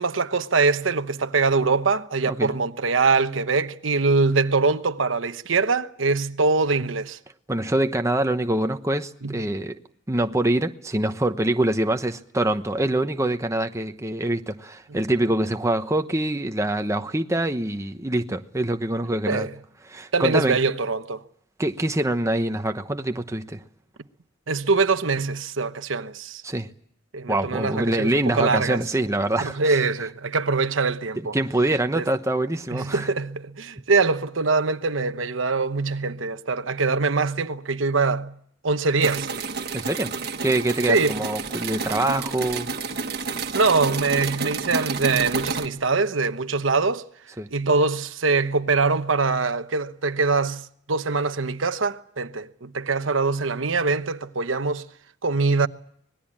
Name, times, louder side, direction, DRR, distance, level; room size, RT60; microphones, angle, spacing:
voice 1, 0.0-7.2 9.2-9.4 19.2-19.5 20.1-21.2 24.5-26.4 27.1-28.8 29.4-31.4 31.9-32.1 32.7-38.3 38.6-39.3 40.9-41.1 43.5-47.1 47.5-54.8 55.2-55.7, right 4 dB, 90° right, 1.1 m, -23 dB
voice 2, 7.5-9.7 10.1-19.5 19.9-20.6 21.6-23.6 26.4-26.7 27.3-29.8 31.3-33.1 39.7-40.1 40.4-42.7 47.4-47.5, right 1 dB, 15° right, 1.0 m, -25 dB
sound 1, 39.0-45.7, right 4 dB, 55° right, 1.6 m, -30 dB
25.0 x 20.0 x 8.7 m
head